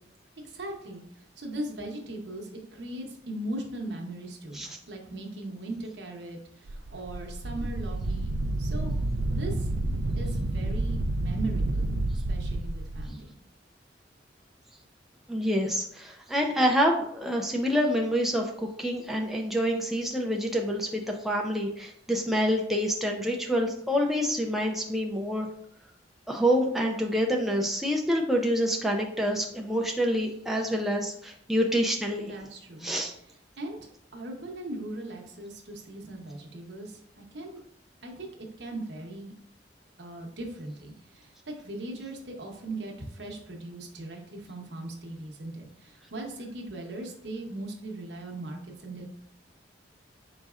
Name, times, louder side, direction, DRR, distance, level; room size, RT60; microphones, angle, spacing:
voice 1, 0.4-8.9 9.4-9.7 10.2-11.9 12.3-13.3 32.3-32.9 33.6-37.6 38.0-39.4 40.0-49.1, right 1 dB, 70° right, 1 dB, 0.9 m, -39 dB
Wind, 6.7-13.1, right 2 dB, 90° right, 0.4 m, -29 dB
voice 2, 15.3-25.5 26.3-32.3 32.8-33.1, equal, ahead, -1 dB, 0.4 m, -27 dB
5.1 x 4.0 x 2.4 m, 0.68 s
head